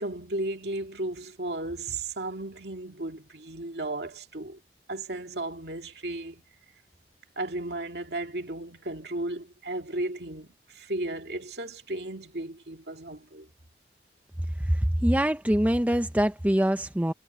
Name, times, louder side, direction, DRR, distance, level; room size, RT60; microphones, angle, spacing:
voice 1, 0.0-4.6 4.9-6.4 7.4-13.5, right 2 dB, 65° right, 2.4 m, -34 dB
voice 2, 14.6-17.1, equal, 10° right, 0.6 m, -24 dB
head